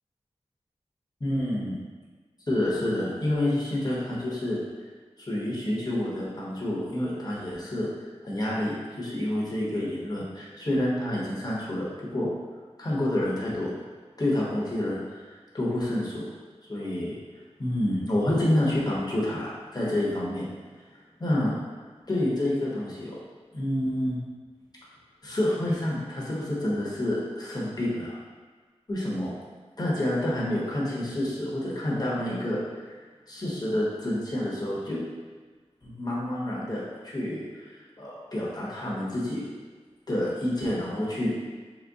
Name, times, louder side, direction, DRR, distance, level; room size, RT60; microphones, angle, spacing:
voice 1, 1.2-1.8 2.5-4.6 5.2-7.9 8.2-11.9 12.1-12.3 12.8-13.7 14.2-16.2 16.7-17.2 17.6-20.5 21.2-21.5 22.1-23.2 23.5-24.2 25.2-28.2 28.9-29.3 29.8-32.6 33.3-35.0 35.8-39.4 40.1-41.3, left 1 dB, 35° left, -6 dB, 1.0 m, -28 dB
3.9 x 2.2 x 3.5 m, 1.4 s
wide cardioid pair, 70°, 11 cm